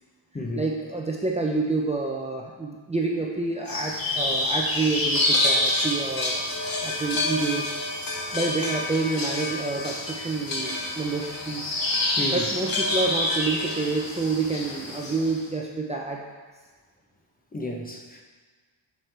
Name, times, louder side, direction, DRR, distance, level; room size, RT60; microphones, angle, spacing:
voice 1, 0.5-6.4 6.8-7.7 8.3-11.7 12.3-16.2, right 3 dB, 15° right, -2 dB, 0.5 m, -28 dB
sound 1, 3.7-15.4, left 1 dB, 50° left, 1.4 m, -27 dB
voice 2, 17.5-18.2, left 1 dB, 20° left, 1 dB, 0.7 m, -32 dB
7.6 x 6.5 x 3.3 m, 1.4 s
wide cardioid pair, 135°, 45 cm